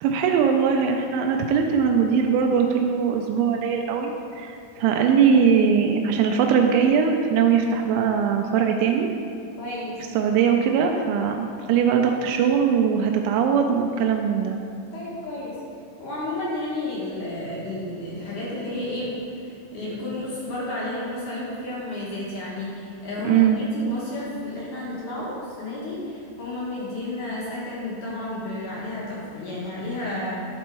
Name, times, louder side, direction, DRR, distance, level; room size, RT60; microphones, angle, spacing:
voice 1, 0.0-9.1 10.2-14.6 23.2-23.6, right 7 dB, 85° right, 2 dB, 2.9 m, -21 dB
voice 2, 9.6-10.0 14.9-15.6 16.0-19.1 19.4-30.5, left 1 dB, 60° left, -7 dB, 2.1 m, -32 dB
11.0 x 4.3 x 4.6 m, 2.5 s
omnidirectional pair, 5.3 m